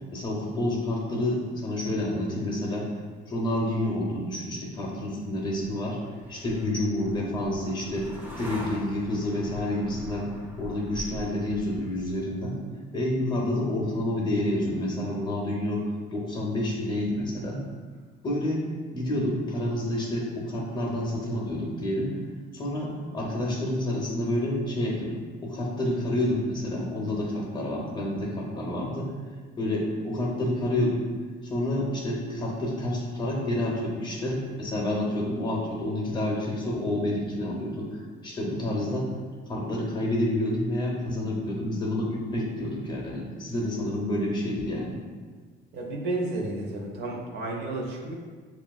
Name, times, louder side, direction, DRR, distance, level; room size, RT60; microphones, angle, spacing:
voice 1, 0.1-2.9 3.3-6.0 6.3-8.1 8.4-10.3 10.6-12.6 12.9-15.8 16.1-17.6 18.2-18.6 18.9-22.1 22.5-25.1 25.4-29.1 29.6-31.0 31.4-39.1 39.5-45.0, left 1 dB, 25° left, -3 dB, 0.7 m, -29 dB
sound 1, 5.1-12.4, equal, 10° right, 0.5 m, -43 dB
voice 2, 45.7-48.1, right 2 dB, 65° right, -1 dB, 0.8 m, -32 dB
6.9 x 2.4 x 2.3 m, 1.5 s
cardioid pair, 165°, 19 cm